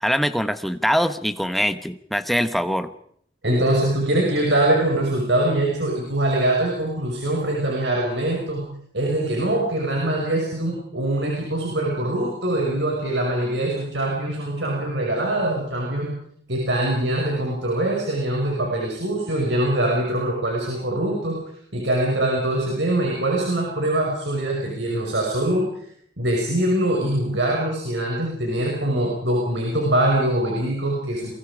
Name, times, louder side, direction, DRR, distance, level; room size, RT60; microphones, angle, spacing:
voice 1, 0.0-2.9, equal, ahead, 10 dB, 1.1 m, -23 dB
voice 2, 3.4-8.6 8.9-16.1 16.5-21.4 21.7-25.7 26.2-31.3, right 1 dB, 80° right, -1 dB, 5.6 m, -23 dB
28.5 x 23.0 x 5.0 m, 0.66 s
head